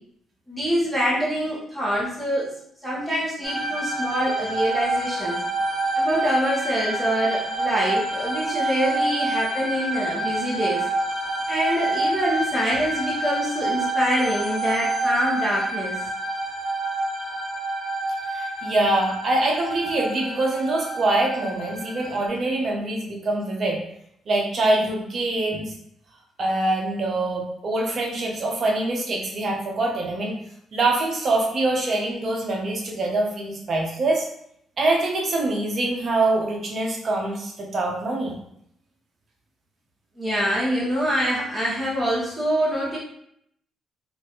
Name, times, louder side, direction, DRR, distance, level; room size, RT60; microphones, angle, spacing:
voice 1, 0.5-2.5 2.8-5.4 5.9-10.8 11.5-16.0 40.2-43.0, equal, ahead, -8 dB, 1.1 m, -25 dB
sound 1, 3.4-22.3, right 2 dB, 25° right, 1.1 m, -27 dB
voice 2, 18.3-23.8 24.3-25.7 26.4-30.4 30.7-34.3 34.8-38.3, right 2 dB, 50° right, 0 dB, 0.8 m, -24 dB
2.9 x 2.6 x 2.9 m, 0.73 s
cardioid pair, 90°, 0 cm